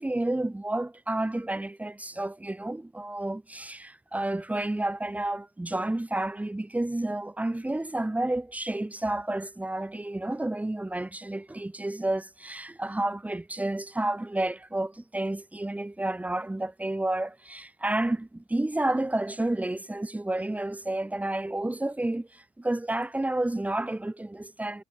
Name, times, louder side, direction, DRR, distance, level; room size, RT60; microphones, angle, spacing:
voice 1, 0.0-24.8, right 1 dB, 10° right, 1.8 m, -30 dB
cardioid pair, 110°, 17 cm